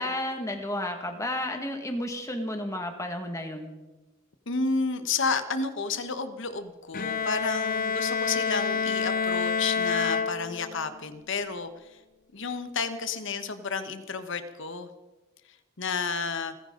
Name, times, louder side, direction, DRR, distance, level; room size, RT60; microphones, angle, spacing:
voice 1, 0.0-3.7, left 1 dB, 15° left, 4 dB, 1.8 m, -32 dB
voice 2, 4.5-12.0 12.3-14.9 15.8-16.6, left 4 dB, 60° left, 10 dB, 1.2 m, -31 dB
Bowed string instrument, 6.9-10.9, left 5 dB, 45° left, 0.7 m, -28 dB
28.5 x 10.5 x 3.9 m, 1.1 s
head